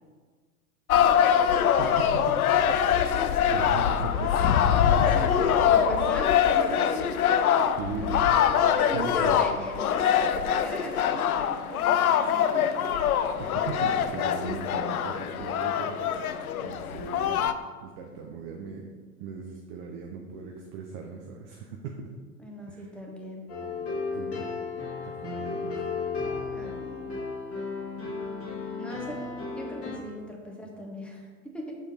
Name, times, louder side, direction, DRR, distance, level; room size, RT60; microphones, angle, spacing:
sound 1, 0.9-17.5, left 8 dB, 75° left, 0.6 m, -24 dB
voice 1, 1.8-2.4 3.5-5.0 5.3-5.6 7.8-8.3 8.9-9.5 12.5-12.6 13.4-17.5 17.8-18.9 19.2-22.1 22.7-22.9 24.1-24.5 25.0-25.8, right 5 dB, 20° right, 1 dB, 0.3 m, -38 dB
voice 2, 5.1-7.1 8.7-12.9 22.4-23.5 26.5-27.2 28.8-29.2 29.5-31.7, right 1 dB, ahead, -1 dB, 1.0 m, -39 dB
sound 2, 23.5-30.0, left 4 dB, 30° left, 2.0 m, -34 dB
6.4 x 4.6 x 4.1 m, 1.5 s
figure-of-eight pair, 95°, 44 cm